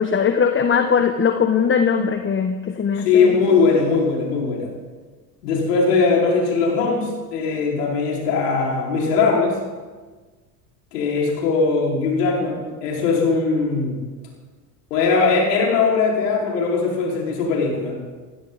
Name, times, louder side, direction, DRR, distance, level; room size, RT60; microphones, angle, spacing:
voice 1, 0.0-3.4, left 6 dB, 25° left, 7 dB, 1.2 m, -20 dB
voice 2, 3.0-4.7 5.4-9.6 10.9-14.0 14.9-18.0, left 4 dB, 75° left, -3 dB, 5.3 m, -20 dB
19.0 x 16.5 x 4.2 m, 1.4 s
hypercardioid pair, 75°, 48 cm